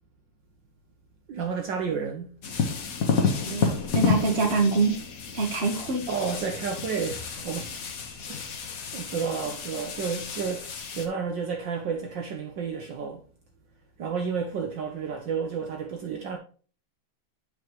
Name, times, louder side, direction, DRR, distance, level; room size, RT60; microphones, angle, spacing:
voice 1, 1.3-2.4 6.1-7.8 8.1-13.2 14.0-16.4, right 6 dB, 65° right, 1.5 m, -31 dB
sound 1, 2.4-11.1, left 5 dB, 50° left, 1.2 m, -30 dB
voice 2, 3.4-4.9 5.3-6.0, right 3 dB, 35° right, 1.4 m, -25 dB
8.0 x 5.2 x 3.0 m
omnidirectional pair, 2.4 m